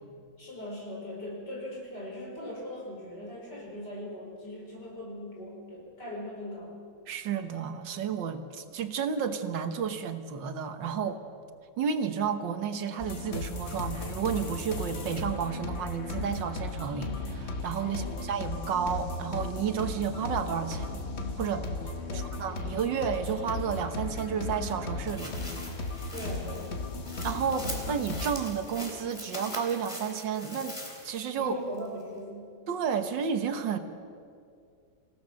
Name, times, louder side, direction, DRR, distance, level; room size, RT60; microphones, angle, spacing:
voice 1, 0.4-6.7 17.8-18.1 22.0-22.3 26.1-26.8 31.3-32.6, left 1 dB, 65° left, -3 dB, 5.9 m, -40 dB
voice 2, 7.1-11.2 11.8-21.0 21.4-21.6 22.1-25.4 27.2-31.6 32.7-33.8, right 7 dB, 75° right, 8 dB, 1.8 m, -31 dB
sound 1, 13.0-28.4, left 3 dB, 40° left, 1.5 m, -36 dB
sound 2, 25.1-31.4 31.8-31.9, left 1 dB, 15° left, 3.3 m, -42 dB
27.5 x 16.5 x 6.4 m, 2.3 s
omnidirectional pair, 2.0 m